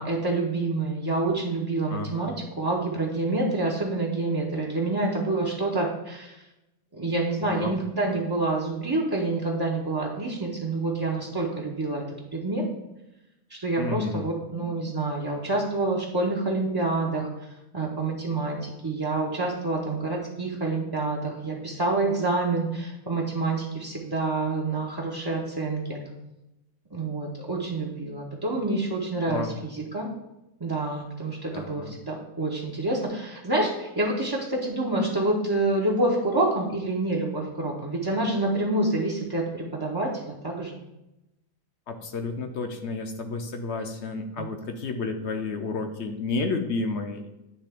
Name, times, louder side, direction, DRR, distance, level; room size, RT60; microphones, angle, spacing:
voice 1, 0.0-2.3 2.6-6.4 6.9-12.0 12.3-12.6 13.5-17.3 17.7-26.0 26.9-30.1 30.6-40.1 40.4-40.8 44.4-44.5, right 2 dB, 30° right, -3 dB, 0.4 m, -27 dB
voice 2, 1.9-2.3 7.4-7.8 13.8-14.2 29.3-29.6 31.5-32.0 41.9-47.3, left 3 dB, 60° left, 6 dB, 0.8 m, -31 dB
9.8 x 3.3 x 3.5 m, 0.92 s
omnidirectional pair, 1.5 m